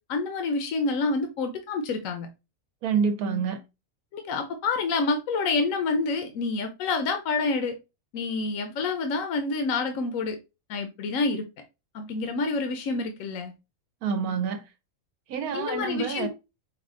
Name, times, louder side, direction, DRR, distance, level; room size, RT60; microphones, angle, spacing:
voice 1, 0.1-2.3 4.1-7.8 8.1-10.4 10.7-11.4 11.9-13.5 15.5-16.3, left 3 dB, 70° left, 1.0 m, -28 dB
voice 2, 2.8-3.6 14.0-14.6 15.3-16.3, right 6 dB, 80° right, 1.1 m, -27 dB
4.8 x 2.3 x 3.6 m
omnidirectional pair, 1.6 m